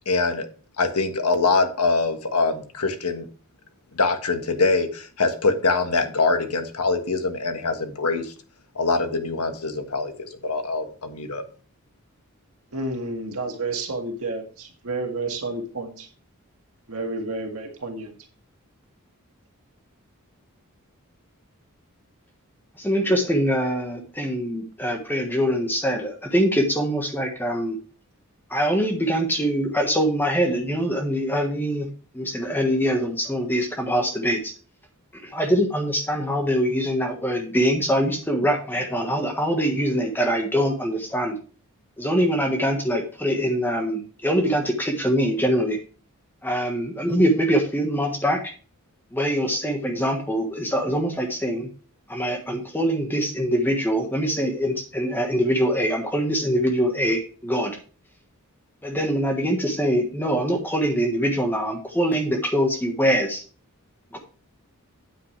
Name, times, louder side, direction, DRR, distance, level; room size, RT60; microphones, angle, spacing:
voice 1, 0.0-0.5 0.8-3.3 3.9-8.3 8.7-11.4, left 3 dB, 90° left, 6 dB, 1.5 m, -23 dB
voice 2, 12.7-16.1 16.9-18.1, right 2 dB, 70° right, 2 dB, 1.8 m, -30 dB
voice 3, 22.8-27.8 28.5-31.9 32.1-34.5 35.2-41.4 42.0-45.8 46.4-48.4 49.1-51.7 52.1-57.8 58.8-63.4 64.1-64.2, equal, 10° left, 2 dB, 1.4 m, -23 dB
9.1 x 8.2 x 3.3 m, 0.38 s
head